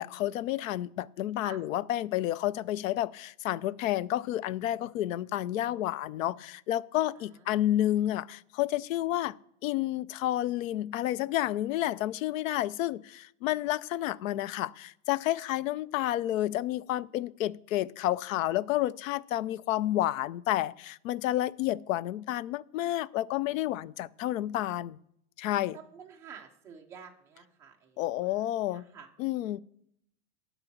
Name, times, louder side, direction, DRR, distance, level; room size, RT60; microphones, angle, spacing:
voice 1, 0.0-9.3 9.6-25.0 25.4-25.8 28.0-28.8 29.2-29.6, left 14 dB, 80° left, 0.5 m, -30 dB
voice 2, 7.1-7.8 24.2-24.6 25.7-28.4 28.7-29.1, right 7 dB, 5° right, 0.3 m, -51 dB
10.5 x 4.1 x 7.2 m
supercardioid pair, 165°, 39 cm